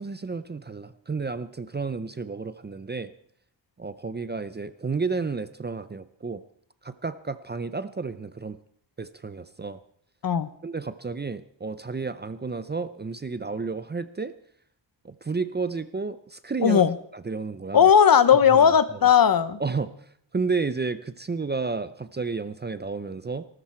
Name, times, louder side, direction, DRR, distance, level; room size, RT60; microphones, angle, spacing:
voice 1, 0.0-3.1 3.8-6.4 6.8-8.6 9.0-9.8 10.6-14.3 15.0-16.8 17.1-17.9 18.5-18.7 19.6-23.4, right 4 dB, 25° right, 13 dB, 0.6 m, -31 dB
voice 2, 16.6-16.9 17.7-19.6, left 8 dB, 50° left, 14 dB, 0.9 m, -17 dB
19.0 x 13.0 x 4.4 m, 0.64 s
wide cardioid pair, 135°, 44 cm